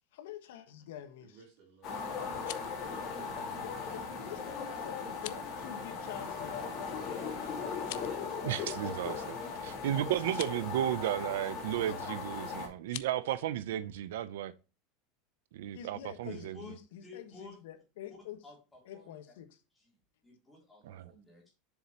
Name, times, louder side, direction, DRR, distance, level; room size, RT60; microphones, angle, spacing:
voice 1, 0.1-1.4 3.6-6.6 11.9-12.2 15.7-18.4 18.8-19.5, left 10 dB, 80° left, 1.4 m, -46 dB
voice 2, 1.2-3.7 6.6-7.1, right 5 dB, 50° right, 3.1 m, -61 dB
sound 1, 1.8-12.7, left 5 dB, 30° left, 3.0 m, -38 dB
sound 2, 2.2-2.8 5.1-5.5 7.7-8.2 10.2-10.6 12.8-13.1, left 17 dB, 55° left, 0.5 m, -44 dB
voice 3, 8.4-9.4 9.6-14.5 15.5-16.6 20.8-21.1, right 12 dB, 85° right, 0.6 m, -34 dB
voice 4, 16.2-16.7 17.0-17.6 18.4-19.1 19.7-19.9 20.2-21.5, left 3 dB, 5° left, 3.4 m, -52 dB
7.3 x 7.0 x 2.9 m
supercardioid pair, 175°, 0 cm